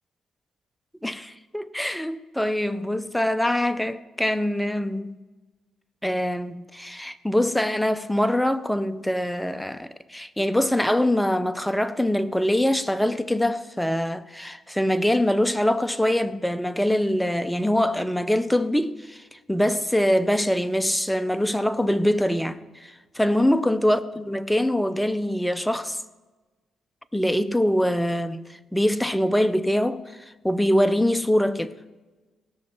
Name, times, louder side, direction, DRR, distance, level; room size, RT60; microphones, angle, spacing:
voice 1, 1.0-5.2 6.0-19.2 19.5-26.0 27.1-28.4 28.7-30.0 30.4-31.7, left 1 dB, 5° left, 0.6 m, -23 dB
17.0 x 6.4 x 4.4 m
cardioid pair, 90°, 0 cm